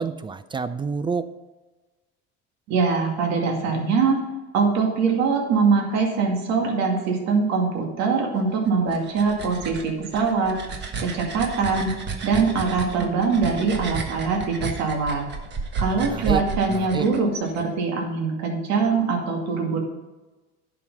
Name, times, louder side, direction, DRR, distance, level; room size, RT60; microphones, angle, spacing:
voice 1, 0.0-1.3 15.9-17.1, right 5 dB, 15° right, 13 dB, 0.3 m, -29 dB
voice 2, 2.7-4.2 4.5-10.5 11.0-11.9 12.2-15.2 15.8-19.8, right 5 dB, 60° right, 1 dB, 2.3 m, -23 dB
sound 1, 8.7-17.6, right 5 dB, 35° right, 1.4 m, -32 dB
11.0 x 6.0 x 5.6 m, 1.2 s
cardioid pair, 135°, 30 cm